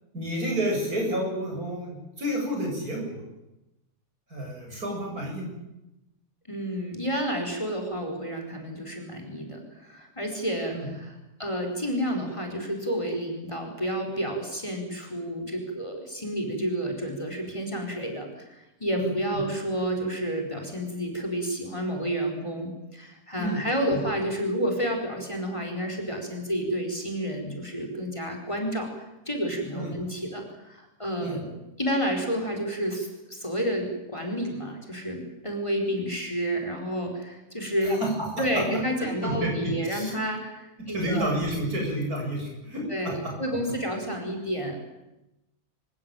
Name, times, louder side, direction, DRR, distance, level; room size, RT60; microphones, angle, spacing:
voice 1, 0.1-3.2 4.3-5.5 10.7-10.9 18.9-19.1 23.4-23.6 23.9-24.0 29.7-29.9 31.2-31.4 38.0-38.1 39.2-39.5 39.9-40.1 40.9-43.1, right 1 dB, 70° right, 0 dB, 8.4 m, -30 dB
voice 2, 6.5-11.1 11.4-38.0 38.4-41.2 42.9-45.0, equal, 20° left, 3 dB, 4.7 m, -30 dB
27.0 x 16.0 x 9.1 m, 0.95 s
omnidirectional pair, 1.6 m